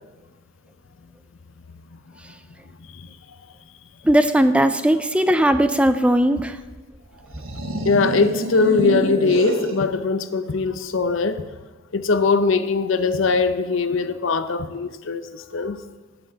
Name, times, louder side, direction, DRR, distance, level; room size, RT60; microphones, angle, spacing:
voice 1, 4.0-6.6, right 1 dB, 5° right, 0.4 m, -18 dB
sound 1, 7.2-9.9, right 1 dB, 70° right, 1.3 m, -27 dB
voice 2, 7.8-11.4 11.9-15.8, left 4 dB, 60° left, 0.6 m, -21 dB
8.7 x 7.7 x 7.0 m
head